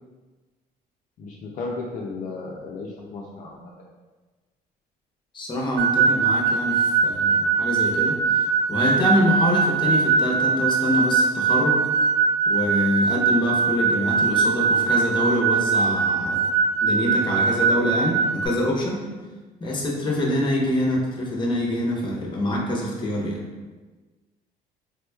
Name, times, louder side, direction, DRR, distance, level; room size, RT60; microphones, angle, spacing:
voice 1, 1.2-3.7, left 3 dB, 50° left, -3 dB, 0.5 m, -34 dB
voice 2, 5.3-11.8 12.5-16.5 16.8-19.0 19.6-23.4, left 1 dB, 25° left, -2 dB, 0.8 m, -25 dB
sound 1, 5.8-18.5, right 5 dB, 80° right, 0.5 m, -21 dB
3.4 x 3.0 x 2.3 m, 1.3 s
cardioid pair, 110°, 17 cm